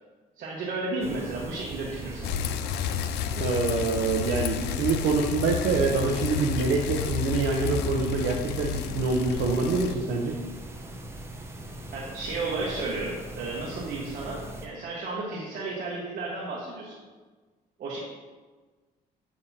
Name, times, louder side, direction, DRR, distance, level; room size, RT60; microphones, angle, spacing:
voice 1, 0.4-2.3 11.9-17.0 17.8-18.0, right 3 dB, 55° right, -5 dB, 1.3 m, -33 dB
sound 1, 1.0-14.7, right 1 dB, 15° right, 0.8 m, -41 dB
Bicycle, 2.2-10.0, left 8 dB, 80° left, 0.4 m, -31 dB
voice 2, 3.4-10.3, right 4 dB, 85° right, 0 dB, 0.8 m, -26 dB
7.2 x 6.6 x 2.8 m, 1.4 s
cardioid pair, 110°, 17 cm